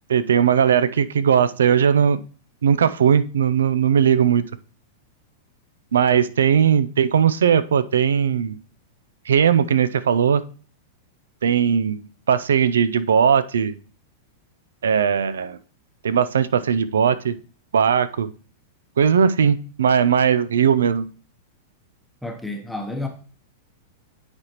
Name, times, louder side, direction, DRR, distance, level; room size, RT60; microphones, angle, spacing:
voice 1, 0.1-2.2 2.6-4.4 5.9-8.6 9.3-10.4 11.4-12.0 12.3-13.7 14.8-15.6 16.0-17.4 17.7-18.3 19.0-21.0, right 7 dB, 90° right, 0.4 m, -18 dB
voice 2, 22.2-23.1, left 2 dB, ahead, 0.9 m, -30 dB
9.5 x 4.2 x 2.9 m
hypercardioid pair, 125°, 0 cm